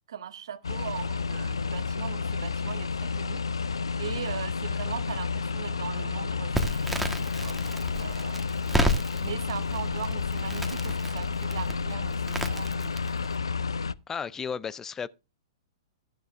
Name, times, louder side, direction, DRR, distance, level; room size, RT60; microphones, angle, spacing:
voice 1, 0.1-7.6 8.0-8.9 9.2-12.9, right 9 dB, 70° right, 1.1 m, -40 dB
sound 1, 0.6-13.9, left 5 dB, 85° left, 0.4 m, -31 dB
Crackle, 6.5-13.4, equal, ahead, 1.4 m, -32 dB
voice 2, 14.1-15.1, left 6 dB, 15° left, 0.4 m, -33 dB
12.5 x 10.5 x 2.5 m
hypercardioid pair, 115°, 3 cm